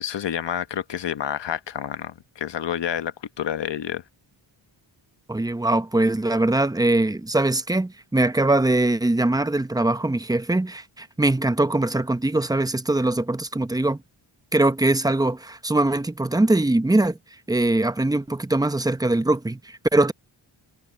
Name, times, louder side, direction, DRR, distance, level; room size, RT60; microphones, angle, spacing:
voice 1, 0.0-4.0, left 9 dB, 70° left, 1.1 m, -29 dB
voice 2, 5.3-14.0 14.5-17.2 17.5-20.1, right 2 dB, 10° right, 0.8 m, -22 dB
cardioid pair, 80°, 45 cm